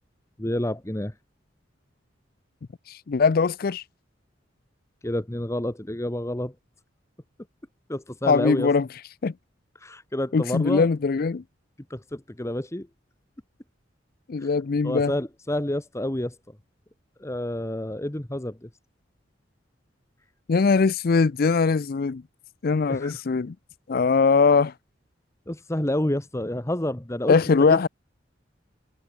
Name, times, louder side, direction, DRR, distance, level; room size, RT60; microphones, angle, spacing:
voice 1, 0.4-1.2 5.0-6.5 7.9-8.7 9.8-10.9 11.9-12.9 14.4-14.5 14.8-16.6 17.2-18.7 22.9-23.2 25.5-27.9, left 1 dB, 15° left, 1.1 m, -29 dB
voice 2, 2.9-3.8 8.3-8.9 9.2-9.3 10.3-11.4 14.3-15.1 20.5-22.2 22.6-23.5 23.9-24.7 27.3-27.9, left 4 dB, 50° left, 0.4 m, -21 dB
head